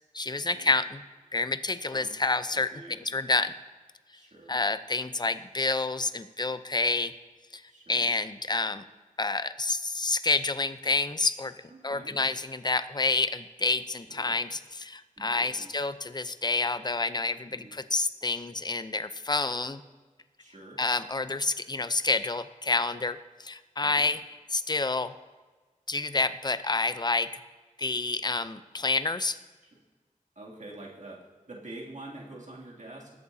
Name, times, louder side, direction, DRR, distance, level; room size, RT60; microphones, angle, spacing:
voice 1, 0.1-1.0 1.3-3.5 4.5-7.1 7.5-7.6 7.9-8.8 9.2-11.5 11.8-19.8 20.8-24.2 24.5-25.1 25.9-27.3 27.8-29.4, left 3 dB, 30° left, 12 dB, 0.6 m, -28 dB
voice 2, 2.5-3.0 4.1-4.6 7.7-8.1 11.8-12.2 13.9-14.4 15.2-15.7 17.5-17.7 20.4-20.8 23.8-24.1 30.4-33.2, right 2 dB, 60° right, -3 dB, 2.7 m, -46 dB
20.5 x 8.5 x 2.8 m, 1.3 s
wide cardioid pair, 60°, 14 cm